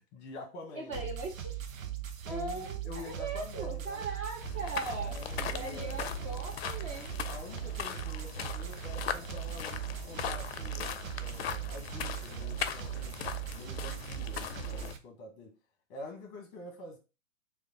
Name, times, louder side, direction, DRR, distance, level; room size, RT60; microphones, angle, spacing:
voice 1, 0.0-1.1 2.2-4.0 5.0-6.0 7.3-13.2 13.5-15.5 15.9-17.0, left 2 dB, 25° left, 0.9 m, -47 dB
voice 2, 0.8-1.6 2.3-7.1 14.4-14.6, right 3 dB, 25° right, 0.5 m, -40 dB
sound 1, 0.9-15.0, right 11 dB, 70° right, 0.8 m, -39 dB
sound 2, 4.4-14.9, left 8 dB, 50° left, 0.4 m, -39 dB
3.3 x 2.4 x 3.7 m
figure-of-eight pair, 115°, 41 cm